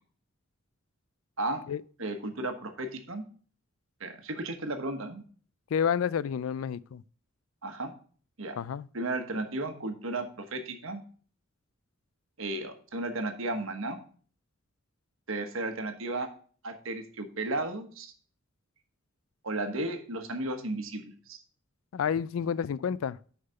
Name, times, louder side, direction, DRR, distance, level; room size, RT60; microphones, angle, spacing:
voice 1, 2.0-3.2 4.0-5.2 7.6-7.9 8.4-8.6 8.9-11.0 12.4-14.0 15.3-16.3 16.6-18.1 19.4-21.4, right 2 dB, 70° right, 1.3 m, -34 dB
voice 2, 5.7-7.0 8.6-8.9 21.9-23.2, left 7 dB, 75° left, 0.4 m, -29 dB
6.4 x 5.9 x 5.6 m
head